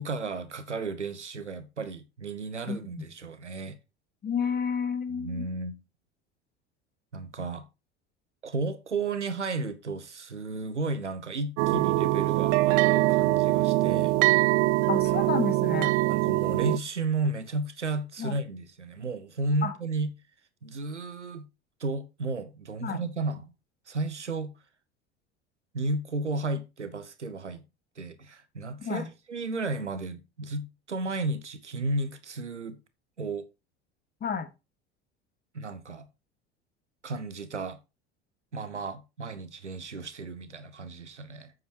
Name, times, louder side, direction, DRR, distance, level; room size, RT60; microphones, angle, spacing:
voice 1, 0.0-3.8 5.1-5.8 7.1-7.6 8.4-14.1 16.1-20.1 20.6-21.5 21.8-23.5 23.9-24.5 25.7-27.6 28.0-32.8 33.2-33.4 35.5-36.1 37.0-37.8 38.5-41.5, right 3 dB, 85° right, 1.0 m, -33 dB
voice 2, 2.7-3.0 4.2-5.4 14.9-15.9 18.2-18.3 19.6-19.7 22.8-23.0 28.8-29.1 34.2-34.5, left 6 dB, 30° left, 1.6 m, -30 dB
sound 1, 11.6-16.8, right 18 dB, 50° right, 0.6 m, -23 dB
9.1 x 8.4 x 2.9 m
figure-of-eight pair, 70°, 34 cm